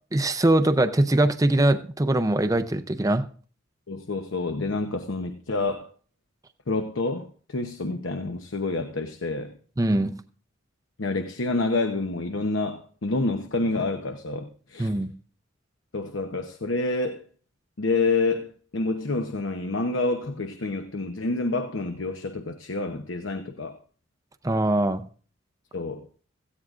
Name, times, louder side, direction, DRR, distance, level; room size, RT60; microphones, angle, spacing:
voice 1, 0.1-3.2 9.8-10.1 14.8-15.1 24.4-25.0, right 1 dB, 15° right, 0.5 m, -22 dB
voice 2, 3.9-5.9 6.7-9.5 11.0-14.9 15.9-17.2 17.8-23.8 25.7-26.1, left 3 dB, 80° left, 0.9 m, -28 dB
17.0 x 14.5 x 2.5 m
head